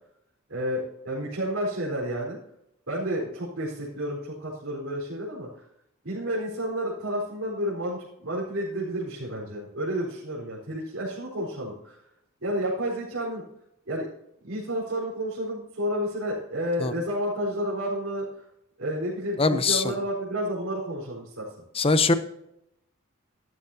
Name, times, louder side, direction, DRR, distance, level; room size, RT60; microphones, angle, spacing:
voice 1, 0.5-2.4 2.9-5.5 6.0-12.0 12.4-13.4 13.9-14.1 14.4-18.4 18.8-21.4, equal, 75° right, -8 dB, 4.3 m, -30 dB
voice 2, 19.4-19.9 21.8-22.1, left 3 dB, 25° left, 11 dB, 0.7 m, -22 dB
13.5 x 12.5 x 2.8 m, 0.78 s
head